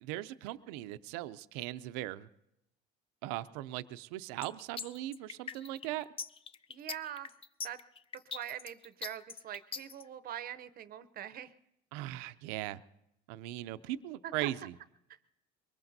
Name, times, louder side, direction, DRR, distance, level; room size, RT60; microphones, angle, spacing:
voice 1, 0.0-2.3 3.2-6.1 11.9-12.8 13.3-14.7, right 15 dB, 90° right, 13 dB, 0.5 m, -39 dB
sound 1, 4.4-10.0, left 6 dB, 30° left, 0.5 m, -42 dB
voice 2, 6.7-7.3 7.6-7.8 8.3-11.5 14.2-14.5, right 11 dB, 50° right, 14 dB, 0.7 m, -43 dB
23.0 x 19.5 x 2.7 m, 0.81 s
supercardioid pair, 105°, 20 cm